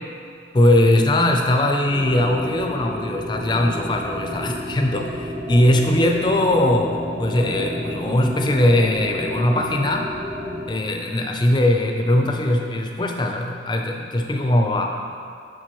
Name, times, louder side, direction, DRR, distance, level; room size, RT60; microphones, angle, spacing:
voice 1, 0.5-10.1 10.7-14.9, left 1 dB, 25° left, 2 dB, 0.5 m, -20 dB
sound 1, 1.9-10.7, equal, 45° right, 1.0 m, -31 dB
7.3 x 4.7 x 3.0 m, 2.4 s
head